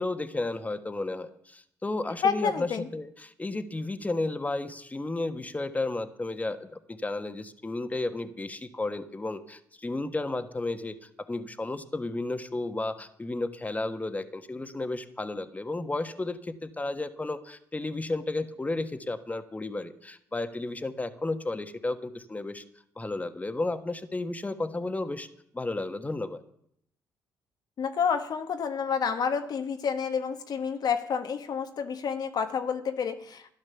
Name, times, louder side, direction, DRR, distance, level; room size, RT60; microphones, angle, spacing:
voice 1, 0.0-22.6 23.0-25.3 25.5-26.4, left 2 dB, 20° left, 9 dB, 1.4 m, -33 dB
voice 2, 2.2-2.9 27.8-33.5, left 6 dB, 60° left, 7 dB, 1.2 m, -29 dB
12.5 x 10.5 x 7.0 m, 0.70 s
supercardioid pair, 55°, 8 cm